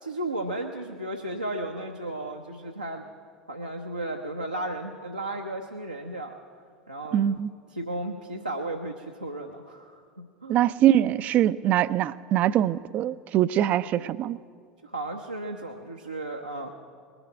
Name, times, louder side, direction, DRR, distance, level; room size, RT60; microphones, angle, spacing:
voice 1, 0.0-3.1 3.5-6.4 6.9-7.2 7.7-10.0 10.4-10.6 14.8-16.7, right 1 dB, 90° right, 0 dB, 0.7 m, -34 dB
voice 2, 7.1-7.5 10.5-14.4, right 11 dB, 40° right, 18 dB, 0.4 m, -23 dB
20.5 x 7.0 x 9.4 m, 2.1 s
figure-of-eight pair, 75°, 4 cm